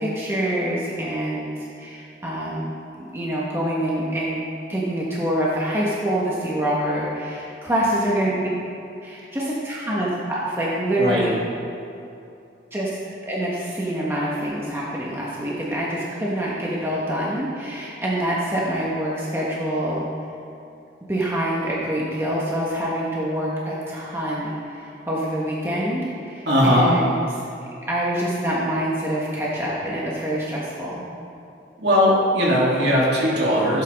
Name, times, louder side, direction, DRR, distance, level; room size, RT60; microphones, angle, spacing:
voice 1, 0.0-2.7 3.1-4.4 4.7-8.5 9.0-11.3 12.7-12.9 13.2-20.1 21.1-27.4 27.9-31.1, right 1 dB, 15° right, -6 dB, 1.3 m, -26 dB
voice 2, 26.5-26.9 31.8-33.8, equal, 65° right, -5 dB, 2.9 m, -18 dB
15.5 x 8.3 x 3.6 m, 2.7 s
head